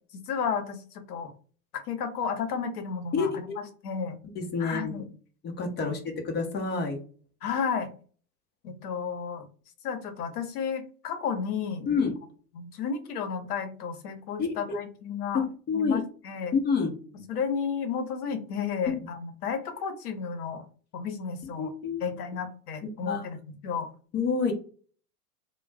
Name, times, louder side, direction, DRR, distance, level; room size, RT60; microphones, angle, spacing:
voice 1, 0.1-0.8 1.1-1.3 1.7-4.2 4.6-5.1 7.4-7.9 8.6-9.4 9.8-11.9 12.5-15.4 15.7-16.5 17.1-20.6 20.9-21.7 22.0-23.9, left 6 dB, 75° left, 7 dB, 0.9 m, -32 dB
voice 2, 3.1-3.6 4.4-5.1 5.4-7.0 11.9-12.1 14.4-14.5 15.3-16.0 16.5-16.9 21.4-22.0 22.8-23.2 24.1-24.5, left 5 dB, 25° left, 3 dB, 0.6 m, -28 dB
2.3 x 2.2 x 3.3 m, 0.40 s
hypercardioid pair, 105°, 46 cm